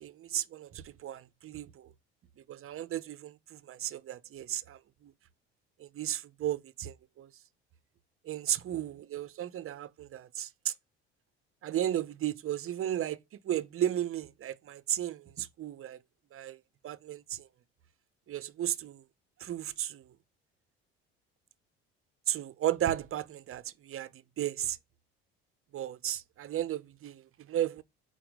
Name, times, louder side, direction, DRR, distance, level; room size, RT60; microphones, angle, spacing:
voice 1, 0.0-1.9 2.5-5.1 5.8-7.3 8.2-10.7 11.6-13.2 13.4-16.0 16.3-16.6 16.8-17.5 18.3-19.0 19.4-20.0 22.3-24.1 24.4-24.8 25.7-27.8, right 11 dB, 45° right, 0.8 m, -34 dB
4.4 x 4.3 x 5.1 m
hypercardioid pair, 65°, 31 cm